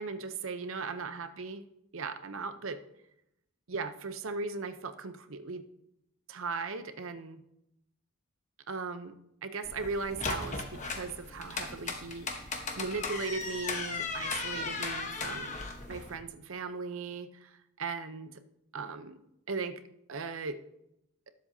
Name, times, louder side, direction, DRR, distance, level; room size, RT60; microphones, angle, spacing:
voice 1, 0.0-1.6 1.9-2.8 3.7-5.6 6.3-7.4 8.7-9.1 9.4-12.5 12.8-15.6 15.9-17.5 17.8-18.4 18.7-19.2 19.5-19.8 20.1-20.6, right 4 dB, 65° right, 10 dB, 0.8 m, -38 dB
sound 1, 9.6-16.2, left 3 dB, 35° left, 1.2 m, -37 dB
19.5 x 7.6 x 2.8 m, 0.82 s
head